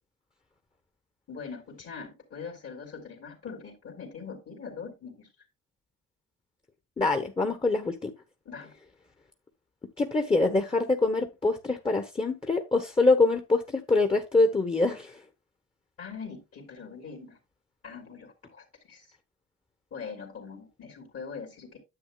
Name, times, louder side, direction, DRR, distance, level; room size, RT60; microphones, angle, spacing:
voice 1, 1.3-5.3 8.4-8.7 16.0-17.4 17.8-19.2 19.9-21.8, left 5 dB, 50° left, 3.0 m, -42 dB
voice 2, 7.0-8.1 10.0-15.2, left 3 dB, 20° left, 1.2 m, -25 dB
9.9 x 7.8 x 2.4 m
cardioid pair, 90°, 30 cm